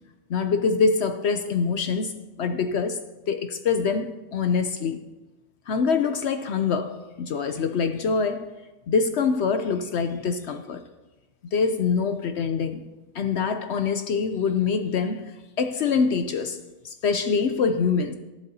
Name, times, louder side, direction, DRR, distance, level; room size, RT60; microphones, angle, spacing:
voice 1, 0.3-5.0 5.7-8.5 8.9-10.8 11.4-12.8 13.1-16.6 16.8-18.1, left 5 dB, 65° left, 0.7 m, -25 dB
13.5 x 11.5 x 2.8 m
omnidirectional pair, 1.6 m